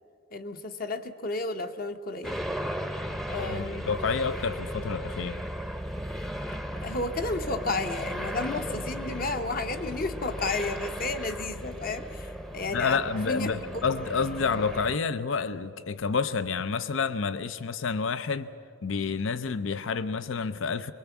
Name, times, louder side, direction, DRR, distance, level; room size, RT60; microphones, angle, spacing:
voice 1, 0.3-2.5 3.3-3.9 6.8-13.0 13.3-13.5, left 3 dB, 45° left, 1.0 m, -32 dB
sound 1, 2.2-15.0, equal, ahead, 0.7 m, -36 dB
voice 2, 3.4-5.4 12.7-18.5 18.8-20.9, left 5 dB, 75° left, 0.6 m, -29 dB
25.0 x 23.0 x 7.1 m
head